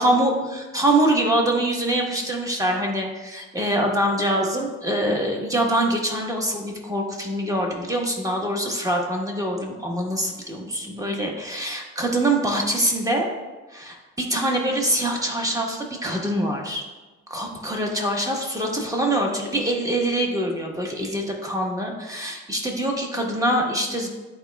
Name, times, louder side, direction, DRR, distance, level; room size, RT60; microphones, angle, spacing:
voice 1, 0.0-13.3 13.7-16.8 17.3-24.1, right 1 dB, 10° right, 0 dB, 1.3 m, -24 dB
11.0 x 4.5 x 2.3 m, 1.2 s
cardioid pair, 90°, 30 cm